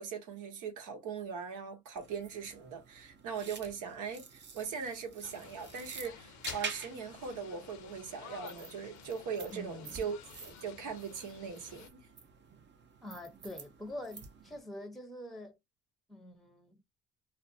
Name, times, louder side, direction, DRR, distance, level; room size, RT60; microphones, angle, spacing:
voice 1, 0.0-12.0, right 6 dB, 85° right, 1.0 m, -40 dB
sound 1, 1.9-14.6, right 5 dB, 35° right, 0.6 m, -49 dB
sound 2, 5.2-11.9, left 9 dB, 70° left, 0.5 m, -50 dB
voice 2, 9.5-10.0 13.0-15.6 16.1-16.8, left 1 dB, ahead, 0.7 m, -45 dB
2.5 x 2.1 x 2.6 m
cardioid pair, 90°, 30 cm